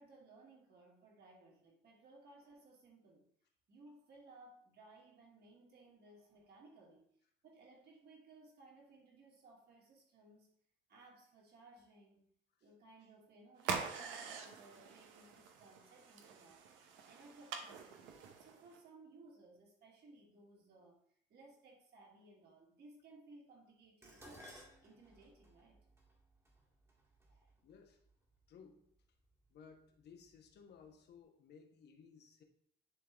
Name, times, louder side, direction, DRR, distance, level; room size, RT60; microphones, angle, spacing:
voice 1, 0.0-3.3 3.7-7.1 7.4-10.5 10.9-12.3 12.6-16.7 17.1-21.0 21.3-25.8 27.3-27.5, right 2 dB, 55° right, -2 dB, 2.5 m, -61 dB
sound 1, 13.6-18.8, right 6 dB, 75° right, 1.0 m, -45 dB
Dishes pots and pans, 24.0-28.4 29.3-29.7 30.0-30.9 31.1-31.2, equal, 15° right, 1.8 m, -60 dB
voice 2, 27.6-28.0 28.5-28.9 29.5-32.4, left 6 dB, 55° left, 4 dB, 1.3 m, -59 dB
10.0 x 3.5 x 3.5 m, 0.67 s
supercardioid pair, 85°, 20 cm